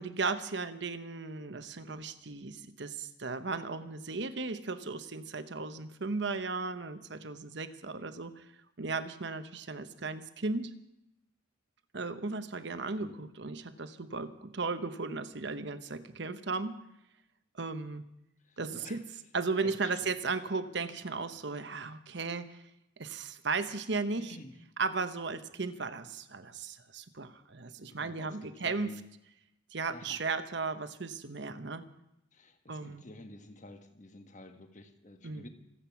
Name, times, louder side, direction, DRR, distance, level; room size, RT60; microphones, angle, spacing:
voice 1, 0.0-8.5 8.8-10.7 11.9-16.8 17.5-18.0 18.6-19.0 19.3-22.6 23.0-24.4 24.8-29.0 29.7-31.8 32.7-33.0 35.2-35.5, right 4 dB, 60° right, 11 dB, 1.0 m, -36 dB
voice 2, 18.4-19.0 19.6-20.1 24.2-24.6 27.9-29.0 29.9-30.2 32.3-35.5, left 2 dB, 40° left, 7 dB, 1.4 m, -51 dB
26.5 x 8.9 x 6.0 m, 0.84 s
head